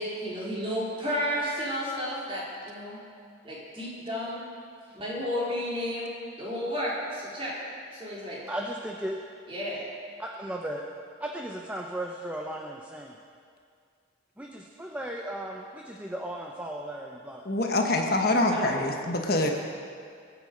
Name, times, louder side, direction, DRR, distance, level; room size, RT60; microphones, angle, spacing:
voice 1, 0.0-3.0 3.4-4.5 4.9-7.5 7.9-8.4 9.5-9.9 18.5-18.8, equal, 30° right, -7 dB, 3.8 m, -32 dB
voice 2, 8.5-9.2 10.2-10.8 11.2-13.2 14.4-17.4, right 1 dB, 10° right, 0 dB, 0.8 m, -36 dB
voice 3, 17.4-19.5, left 2 dB, 50° left, 3 dB, 1.1 m, -25 dB
22.5 x 8.4 x 5.1 m, 2.2 s
head